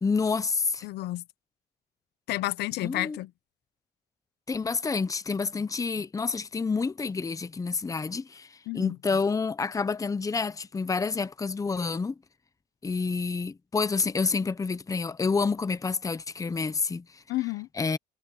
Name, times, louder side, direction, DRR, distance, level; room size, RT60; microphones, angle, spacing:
voice 1, 0.0-0.8 2.8-3.2 4.5-12.1 12.8-17.2 17.8-18.0, left 4 dB, 20° left, 0.9 m, -28 dB
voice 2, 0.8-1.2 2.3-3.3 8.7-9.0 17.3-17.7, left 17 dB, 80° left, 1.0 m, -30 dB
cardioid pair, 110°, 17 cm